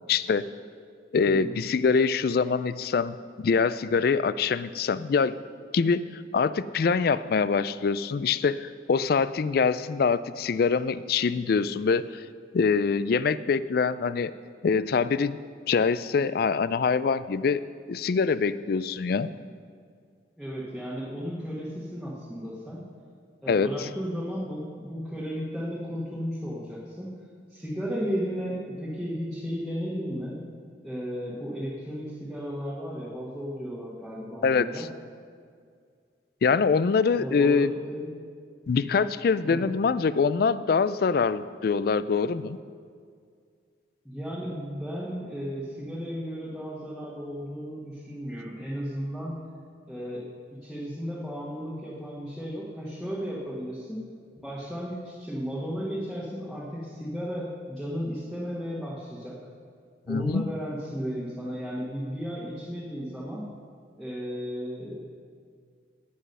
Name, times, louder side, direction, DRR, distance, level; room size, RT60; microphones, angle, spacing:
voice 1, 0.1-0.4 1.1-5.4 5.7-12.2 12.5-14.3 14.6-15.4 15.7-17.6 17.9-19.3 23.5-23.7 34.4-34.9 36.4-37.7 38.7-42.6 60.1-60.5, left 5 dB, 55° left, 15 dB, 0.3 m, -24 dB
voice 2, 1.2-1.6 20.4-22.8 23.4-27.2 27.5-30.4 30.8-34.9 37.1-38.2 39.4-39.7 44.0-49.4 49.9-50.2 50.6-54.0 54.4-59.4 60.1-63.5 64.0-65.0, equal, ahead, -9 dB, 1.4 m, -34 dB
17.0 x 6.2 x 5.4 m, 2.1 s
head